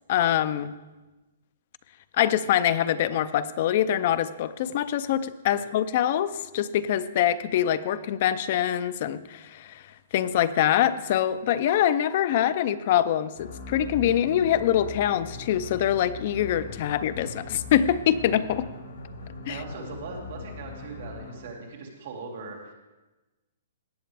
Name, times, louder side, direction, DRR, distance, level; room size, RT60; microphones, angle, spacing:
voice 1, 0.1-0.7 2.1-9.8 10.1-18.7 19.5-19.6, left 11 dB, 35° left, 15 dB, 0.4 m, -24 dB
sound 1, 13.3-21.6, left 4 dB, 80° left, 3.6 m, -40 dB
voice 2, 19.2-22.7, right 4 dB, 40° right, 0 dB, 2.2 m, -40 dB
18.0 x 7.9 x 3.4 m, 1.1 s
hypercardioid pair, 175°, 0 cm